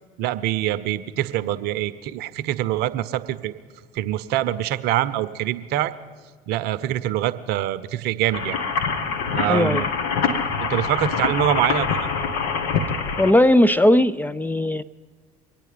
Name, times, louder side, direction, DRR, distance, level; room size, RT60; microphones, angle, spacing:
voice 1, 0.2-3.5 3.9-5.9 6.5-8.6 9.3-9.9 10.6-11.9, right 13 dB, 60° right, 14 dB, 0.7 m, -24 dB
sound 1, 8.3-13.3, left 5 dB, 65° left, 1.1 m, -25 dB
voice 2, 9.5-9.9 13.2-14.8, left 1 dB, 10° left, 12 dB, 0.4 m, -18 dB
24.5 x 9.1 x 5.1 m, 1.5 s
hypercardioid pair, 65°, 19 cm